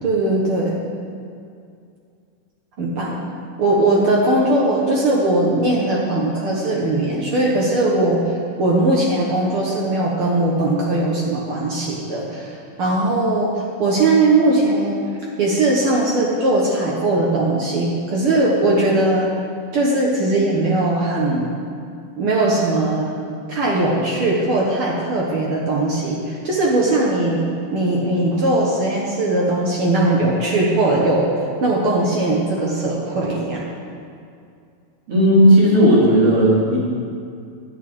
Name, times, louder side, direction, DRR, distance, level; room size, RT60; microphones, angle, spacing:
voice 1, 0.0-0.8 2.8-3.2 3.6-8.2 8.6-15.0 15.4-19.3 19.7-21.5 22.2-23.1 23.5-31.3 31.6-33.6, right 2 dB, 60° right, -3 dB, 1.5 m, -19 dB
voice 2, 35.1-36.8, equal, 45° right, -6 dB, 3.3 m, -13 dB
10.0 x 5.5 x 8.5 m, 2.4 s
omnidirectional pair, 3.9 m